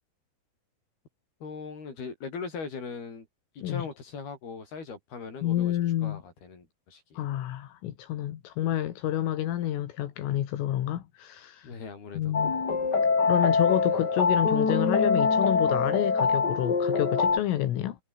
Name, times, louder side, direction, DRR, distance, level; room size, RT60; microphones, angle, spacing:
voice 1, 1.4-3.3 3.5-7.2 11.6-12.4, left 5 dB, 50° left, 8.6 m, -40 dB
voice 2, 5.4-6.2 7.2-11.8 12.2-12.5 13.2-18.0, left 12 dB, 75° left, 4.5 m, -29 dB
sound 1, 12.3-17.4, left 4 dB, 30° left, 2.2 m, -24 dB
omnidirectional pair, 5.9 m